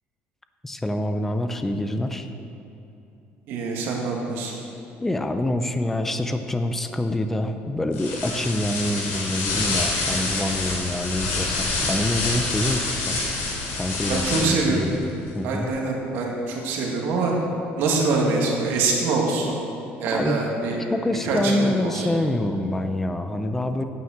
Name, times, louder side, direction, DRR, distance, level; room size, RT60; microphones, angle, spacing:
voice 1, 0.6-2.3 5.0-13.2 13.8-15.1 15.3-15.7 20.1-20.4 20.9-23.8, left 1 dB, 5° left, 8 dB, 0.5 m, -26 dB
voice 2, 3.5-4.5 14.1-14.9 15.4-17.3 17.8-19.6 20.0-20.8 21.2-22.1, right 3 dB, 65° right, -1 dB, 2.1 m, -24 dB
sound 1, 7.9-14.8, left 3 dB, 70° left, 3.1 m, -27 dB
9.5 x 9.0 x 7.3 m, 2.8 s
cardioid pair, 175°, 4 cm